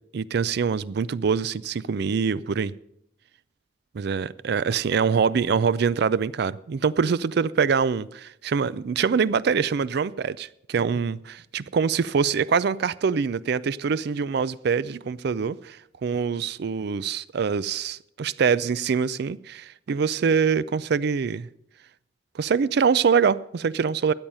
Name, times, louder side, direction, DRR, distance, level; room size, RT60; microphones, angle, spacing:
voice 1, 0.1-2.7 3.9-21.5 22.3-24.1, right 6 dB, 65° right, 0.4 m, -24 dB
13.5 x 9.0 x 5.5 m
head